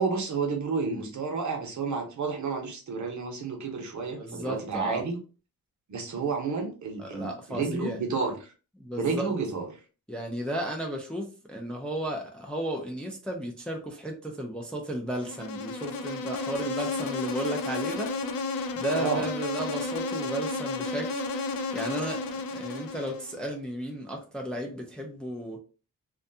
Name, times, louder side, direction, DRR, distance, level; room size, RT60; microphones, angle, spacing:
voice 1, 0.0-5.2 5.9-8.5 9.0-9.7 18.9-19.3, right 5 dB, 55° right, 0.8 m, -31 dB
voice 2, 4.2-5.0 7.0-8.0 8.8-9.3 10.1-18.1 18.7-21.1 21.7-25.6, right 1 dB, 5° left, 0.4 m, -34 dB
Insect, 15.2-23.4, left 3 dB, 80° left, 0.5 m, -32 dB
2.5 x 2.2 x 2.6 m
wide cardioid pair, 165°, 34 cm